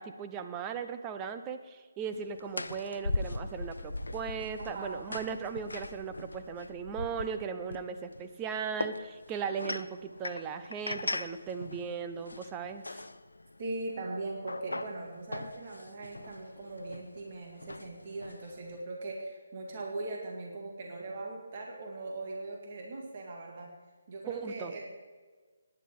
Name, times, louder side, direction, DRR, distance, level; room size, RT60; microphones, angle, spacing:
voice 1, 0.0-13.1 24.3-24.7, right 6 dB, 20° right, 8 dB, 0.8 m, -37 dB
sound 1, 2.1-18.8, left 2 dB, 80° left, 0.6 m, -41 dB
voice 2, 4.6-4.9 13.6-23.7 24.1-24.9, right 2 dB, 40° right, 0 dB, 2.3 m, -40 dB
17.5 x 10.0 x 3.8 m, 1.4 s
figure-of-eight pair, 145°, 0 cm